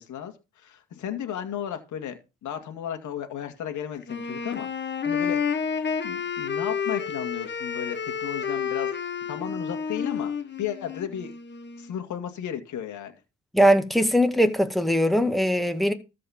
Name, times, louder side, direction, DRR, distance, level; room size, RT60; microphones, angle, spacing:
voice 1, 0.0-5.6 6.0-10.3 10.6-11.3 11.8-13.1, left 9 dB, 75° left, 2.3 m, -34 dB
Wind instrument woodwind instrument, 4.0-11.9, left 6 dB, 35° left, 1.7 m, -30 dB
voice 2, 13.5-15.9, equal, ahead, 2.0 m, -21 dB
14.0 x 5.0 x 7.2 m
cardioid pair, 90°, 30 cm